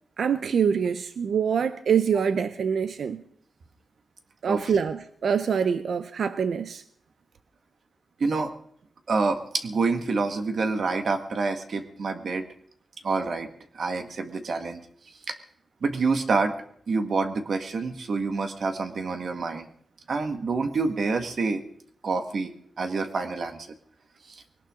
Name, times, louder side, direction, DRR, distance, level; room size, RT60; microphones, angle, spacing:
voice 1, 0.2-3.2 4.4-6.8, right 7 dB, 80° right, 0.6 m, -25 dB
voice 2, 8.2-8.5 9.1-12.5 13.0-13.5 13.7-14.8 15.3-15.4 15.8-16.5 16.9-19.7 20.1-21.6 22.0-22.5 22.8-23.7 24.3-24.4, right 4 dB, 65° right, 1.6 m, -27 dB
21.0 x 18.0 x 3.7 m
wide cardioid pair, 120°, 0 cm